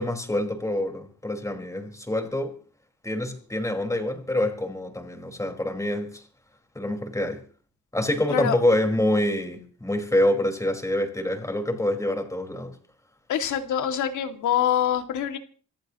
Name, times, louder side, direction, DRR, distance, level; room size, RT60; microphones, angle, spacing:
voice 1, 0.0-2.5 3.0-6.2 6.7-7.4 7.9-12.7, left 1 dB, 10° left, 5.0 m, -26 dB
voice 2, 13.3-15.4, left 9 dB, 75° left, 2.6 m, -25 dB
26.5 x 14.5 x 3.1 m
cardioid pair, 90°, 30 cm